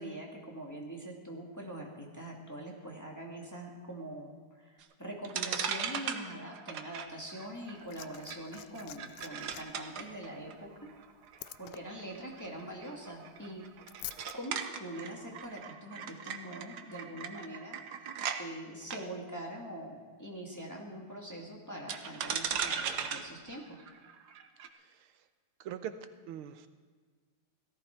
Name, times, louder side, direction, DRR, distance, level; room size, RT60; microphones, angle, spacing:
voice 1, 0.0-10.9 11.6-13.6 14.3-18.0 18.4-23.8, right 1 dB, 10° left, -1 dB, 1.8 m, -43 dB
sound 1, 4.8-4.9 5.2-18.4 18.8-19.0 21.9-24.7, right 7 dB, 60° right, 1.2 m, -39 dB
Liquid, 7.4-14.4 15.4-15.6, left 13 dB, 80° left, 1.0 m, -50 dB
voice 2, 24.8-25.1 25.6-25.9 26.3-26.7, right 10 dB, 80° right, 10 dB, 1.6 m, -42 dB
17.0 x 14.5 x 4.5 m, 1.5 s
omnidirectional pair, 2.4 m